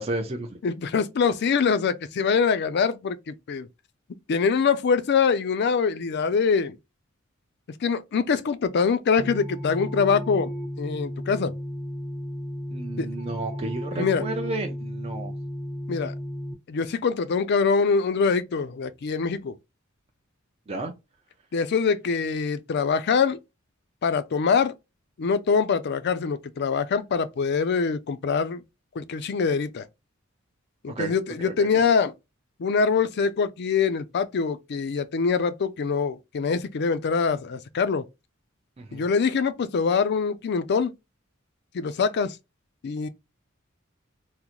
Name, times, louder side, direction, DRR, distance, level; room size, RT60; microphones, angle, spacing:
voice 1, 0.0-0.6 12.7-15.3 20.7-20.9 31.0-31.1 31.4-31.7 38.8-39.1, right 2 dB, 30° right, 0.5 m, -32 dB
voice 2, 0.6-3.7 4.3-6.8 7.8-10.5 10.8-11.6 13.0-13.1 13.9-14.2 15.9-16.1 16.7-19.6 21.5-23.4 24.0-24.7 25.2-28.6 29.0-29.8 30.8-32.1 32.6-38.0 38.9-40.9 41.7-42.4 42.8-43.1, left 5 dB, 55° left, 0.4 m, -24 dB
sound 1, 9.2-16.5, equal, 55° right, 1.0 m, -34 dB
3.7 x 2.1 x 2.9 m
head